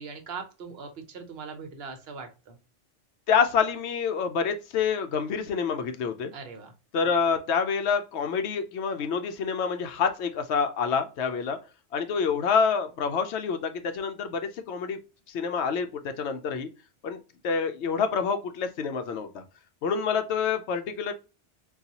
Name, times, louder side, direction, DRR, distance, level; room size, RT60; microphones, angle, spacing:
voice 1, 0.0-2.6 6.3-6.7, right 5 dB, 60° right, 7 dB, 0.9 m, -40 dB
voice 2, 3.3-6.3 6.9-11.6 11.9-15.0 15.3-16.7 17.0-17.2 17.4-19.4 19.8-21.1, left 6 dB, 70° left, 8 dB, 0.8 m, -27 dB
3.9 x 2.4 x 2.8 m, 0.31 s
omnidirectional pair, 1.2 m